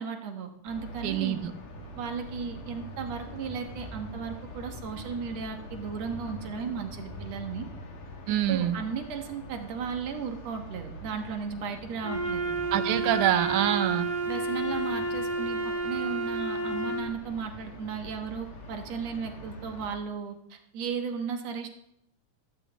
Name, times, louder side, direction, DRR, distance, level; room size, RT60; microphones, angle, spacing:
voice 1, 0.0-1.4 2.0-7.7 8.5-12.5 13.0-13.2 14.3-21.7, right 6 dB, 65° right, 4 dB, 2.3 m, -35 dB
sound 1, 0.7-19.9, equal, 85° left, 3.5 m, -44 dB
voice 2, 1.0-1.5 8.3-8.8 12.7-14.1, right 11 dB, 80° right, 10 dB, 2.3 m, -25 dB
Wind instrument woodwind instrument, 12.0-17.2, right 3 dB, 30° left, 3.4 m, -30 dB
16.0 x 13.0 x 3.0 m, 0.79 s
omnidirectional pair, 3.5 m